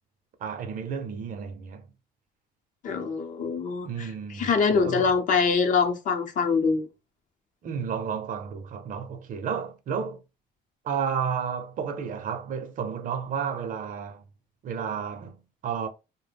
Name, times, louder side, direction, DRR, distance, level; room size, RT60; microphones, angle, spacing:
voice 1, 0.4-1.8 3.8-5.1 7.6-10.2 10.8-14.2 14.6-15.9, right 7 dB, 50° right, 0.6 m, -32 dB
voice 2, 2.8-4.1 4.3-6.9, left 5 dB, 50° left, 0.7 m, -24 dB
2.2 x 2.0 x 3.3 m
cardioid pair, 110°, 17 cm